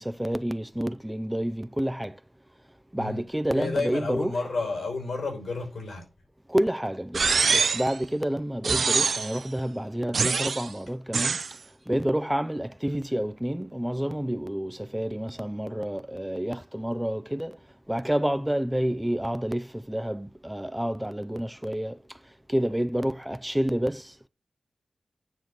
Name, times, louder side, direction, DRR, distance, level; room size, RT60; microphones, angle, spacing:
voice 1, 0.0-2.2 2.9-4.3 6.5-11.4 11.9-17.6 17.9-22.0 22.5-24.3, equal, 5° right, 0.5 m, -29 dB
voice 2, 3.5-6.1, left 3 dB, 85° left, 6.0 m, -31 dB
sound 1, 7.1-7.9 8.6-9.4 10.1-10.7 11.1-11.5, right 5 dB, 70° right, 0.4 m, -24 dB
9.3 x 3.9 x 6.5 m
wide cardioid pair, 95°, 0 cm